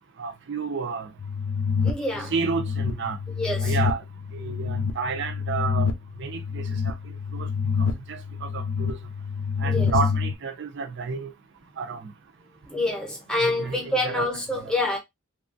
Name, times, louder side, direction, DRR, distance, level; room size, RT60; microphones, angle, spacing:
voice 1, 0.2-1.1 2.3-3.2 3.6-4.0 4.3-5.9 6.2-6.9 7.3-7.5 7.8-9.0 9.6-11.3 11.8-12.1 13.4-14.3 14.6-14.7, right 5 dB, 55° right, 0.5 m, -31 dB
sound 1, 1.2-10.3, left 6 dB, 75° left, 0.5 m, -27 dB
voice 2, 1.8-2.3 3.4-3.8 9.6-9.9 12.7-15.0, left 2 dB, 5° left, 0.8 m, -27 dB
2.8 x 2.4 x 2.5 m
head